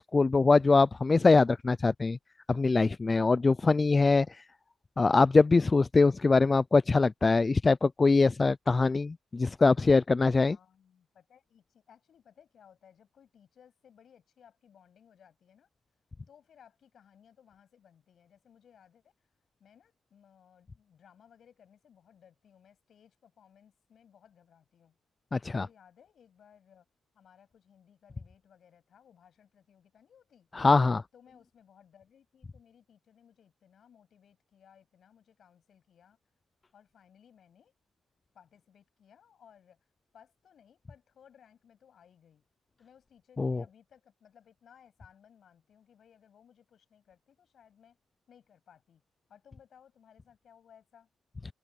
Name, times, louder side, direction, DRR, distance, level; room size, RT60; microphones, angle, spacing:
voice 1, 0.0-2.2 2.5-4.4 5.0-10.6 25.3-25.7 30.5-31.0 43.4-43.6, left 3 dB, 25° left, 0.3 m, -23 dB
voice 2, 10.5-15.7 16.3-19.1 19.6-25.0 25.4-26.9 27.1-30.5 31.1-36.2 36.7-37.7 38.3-39.8 40.1-42.4 42.8-48.0 48.3-49.0 49.3-51.1, left 8 dB, 60° left, 7.7 m, -61 dB
open air
cardioid pair, 90°, 0 cm